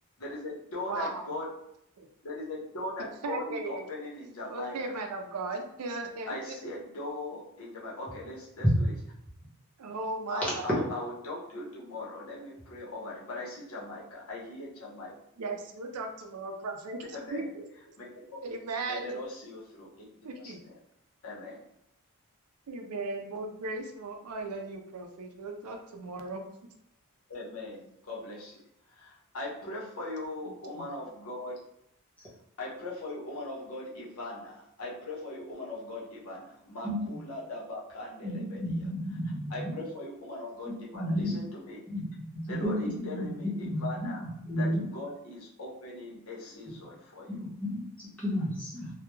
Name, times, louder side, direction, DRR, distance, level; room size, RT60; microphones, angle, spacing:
voice 1, 0.2-1.5 2.2-5.0 6.3-8.9 10.3-15.1 17.1-17.5 18.0-18.4 18.9-20.0 20.4-20.8 21.2-21.7 27.3-28.6 28.9-31.6 32.6-38.9 39.5-41.8 42.5-44.3 44.6-47.5, left 2 dB, 75° left, -5 dB, 0.9 m, -40 dB
voice 2, 0.9-1.3 2.0-2.1 3.0-3.9 4.5-6.6 9.8-10.7 15.4-17.0 17.3-17.6 18.4-19.2 20.2-20.6 22.7-26.5 30.7-30.9, right 3 dB, 90° right, 4 dB, 0.5 m, -37 dB
voice 3, 38.2-39.7 40.7-41.3 41.9-42.1 42.3-44.1 44.4-44.8 47.3-47.8 48.2-48.9, equal, 5° left, -8 dB, 0.8 m, -32 dB
2.3 x 2.2 x 3.0 m, 0.77 s
head